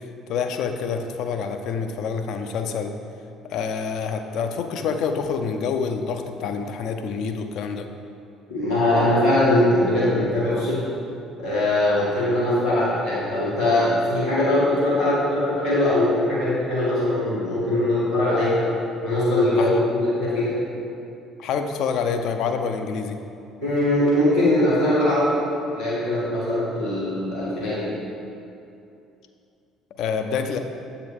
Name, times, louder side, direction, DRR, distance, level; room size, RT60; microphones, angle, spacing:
voice 1, 0.3-2.9 3.5-7.9 19.5-19.7 21.4-23.2 30.0-30.6, left 6 dB, 55° left, 6 dB, 0.4 m, -27 dB
voice 2, 8.5-10.8 11.4-18.6 19.0-20.6 23.6-25.4 25.7-28.0, left 1 dB, 90° left, -15 dB, 1.3 m, -21 dB
7.5 x 4.7 x 3.5 m, 2.6 s
figure-of-eight pair, 50°, 0 cm